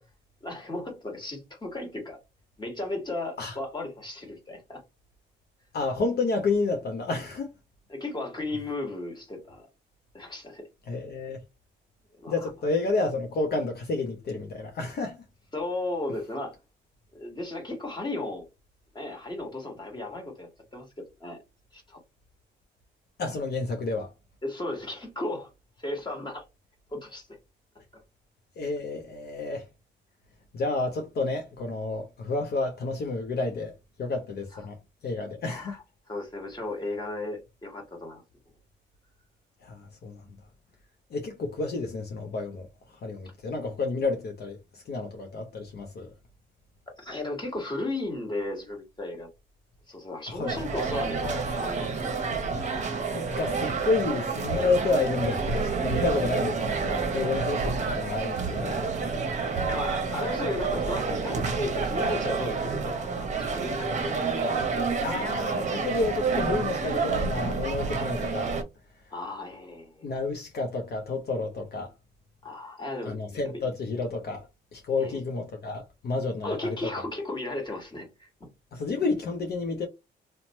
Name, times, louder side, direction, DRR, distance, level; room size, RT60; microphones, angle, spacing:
voice 1, 0.4-2.2 2.6-4.8 7.9-9.7 10.1-10.7 12.2-12.5 15.5-16.6 17.1-18.5 18.9-21.4 21.7-22.0 24.4-25.5 25.8-26.4 26.9-27.3 35.4-35.8 36.1-38.2 47.0-49.3 49.9-51.9 58.5-58.7 59.7-64.3 69.1-70.1 72.4-73.2 73.4-73.6 75.0-75.2 76.4-78.3, left 2 dB, 20° left, 1.5 m, -35 dB
voice 2, 5.7-7.5 10.9-11.4 12.3-15.2 23.2-24.1 28.6-29.7 30.5-35.8 39.6-40.3 41.1-46.1 50.3-50.6 52.5-59.2 65.0-68.5 70.0-71.9 73.0-74.5 74.7-76.9 78.7-79.9, left 3 dB, 55° left, 0.7 m, -30 dB
sound 1, 50.5-68.6, right 4 dB, 35° right, 0.8 m, -29 dB
2.8 x 2.1 x 2.9 m
cardioid pair, 90°, 20 cm